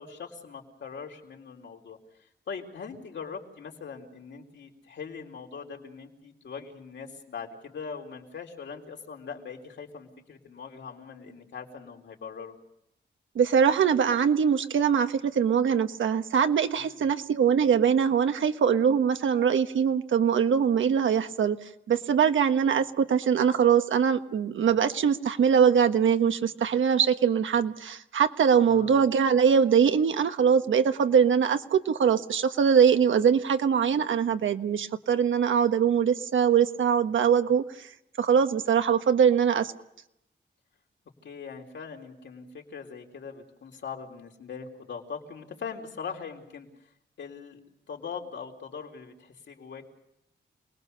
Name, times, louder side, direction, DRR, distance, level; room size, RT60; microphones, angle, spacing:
voice 1, 0.0-2.0 2.5-12.6 16.8-17.1 28.6-29.0 41.2-46.7 47.2-47.6 47.9-49.9, left 6 dB, 70° left, 1 dB, 3.9 m, -41 dB
voice 2, 13.3-37.9 38.2-39.7, right 7 dB, 90° right, 8 dB, 1.4 m, -22 dB
28.5 x 20.5 x 6.8 m, 0.81 s
wide cardioid pair, 170°, 19 cm